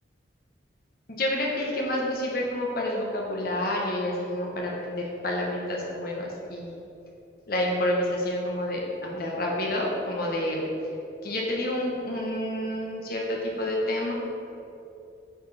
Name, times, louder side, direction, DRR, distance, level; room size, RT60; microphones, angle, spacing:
voice 1, 1.1-6.8 7.5-10.6 11.2-14.1, left 1 dB, 50° left, -1 dB, 1.2 m, -29 dB
9.0 x 5.1 x 4.2 m, 2.7 s
head